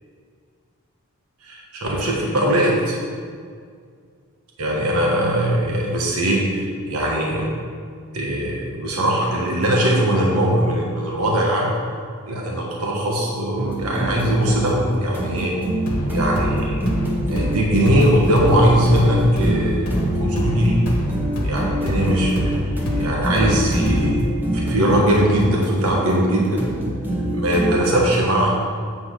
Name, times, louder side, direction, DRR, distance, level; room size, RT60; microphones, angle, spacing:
voice 1, 1.4-3.0 4.6-7.5 8.1-11.7 12.3-15.5 16.1-16.9 17.3-19.9 20.2-20.8 21.4-22.5 23.0-24.2 24.5-26.7 27.3-28.5, right 1 dB, 85° right, -2 dB, 1.3 m, -20 dB
sound 1, 13.6-27.8, right 1 dB, 10° right, 0.9 m, -25 dB
sound 2, 15.9-24.3, equal, 80° left, 1.2 m, -26 dB
8.1 x 4.3 x 5.6 m, 2.1 s
head